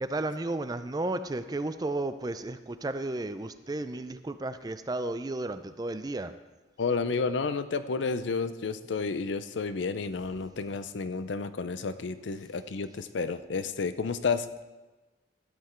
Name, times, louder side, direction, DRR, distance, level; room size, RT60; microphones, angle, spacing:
voice 1, 0.0-6.3, right 2 dB, 20° right, 11 dB, 0.4 m, -33 dB
voice 2, 6.8-14.6, left 4 dB, 80° left, 12 dB, 0.5 m, -31 dB
13.0 x 8.0 x 4.4 m, 1.2 s
head